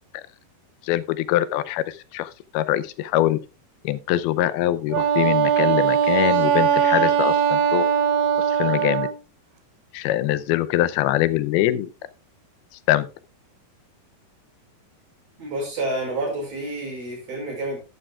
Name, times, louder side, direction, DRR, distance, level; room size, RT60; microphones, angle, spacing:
voice 1, 0.8-3.4 3.8-7.9 8.5-9.1 9.9-11.9 12.9-13.1, left 14 dB, 85° left, 2.6 m, -23 dB
Wind instrument woodwind instrument, 4.9-9.2, right 9 dB, 75° right, 2.9 m, -20 dB
voice 2, 15.4-17.8, right 1 dB, 45° right, 6.3 m, -29 dB
12.0 x 11.5 x 2.3 m
omnidirectional pair, 4.3 m